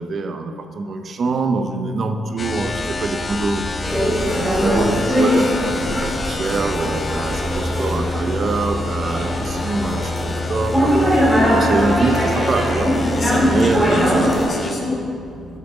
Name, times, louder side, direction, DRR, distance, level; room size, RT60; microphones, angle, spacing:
voice 1, 0.0-11.2 11.5-12.9 13.4-14.3, right 3 dB, 45° right, 7 dB, 0.6 m, -25 dB
sound 1, 2.4-14.8, left 3 dB, 30° left, 0.5 m, -27 dB
sound 2, 2.4-8.0, right 1 dB, 90° right, 1.5 m, -34 dB
sound 3, 3.8-14.5, equal, ahead, 2.2 m, -21 dB
voice 2, 13.1-15.6, left 2 dB, 45° left, -1 dB, 1.8 m, -27 dB
7.7 x 6.8 x 6.0 m, 2.5 s
cardioid pair, 90°, 0 cm